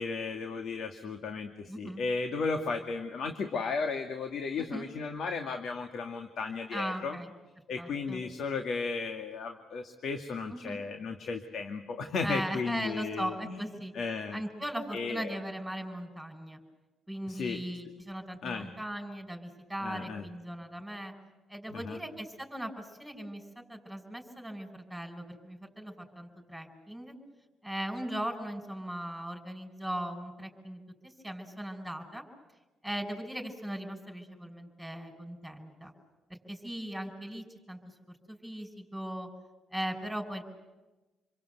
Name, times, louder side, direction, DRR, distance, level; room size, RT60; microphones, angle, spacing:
voice 1, 0.0-7.2 7.7-13.6 13.9-14.4 14.9-15.3 17.3-17.6 18.4-18.7 19.8-20.3 21.7-22.0, left 4 dB, 65° left, 5 dB, 2.2 m, -35 dB
voice 2, 1.7-2.0 4.6-4.9 6.7-7.3 7.8-8.2 10.5-10.8 12.2-13.9 14.3-16.6 17.1-21.1 21.5-27.1 27.6-32.2 32.8-35.9 36.3-37.8 38.1-39.3 39.7-40.4, right 1 dB, ahead, 3 dB, 5.8 m, -38 dB
28.0 x 23.0 x 8.1 m, 1.1 s
cardioid pair, 90°, 0 cm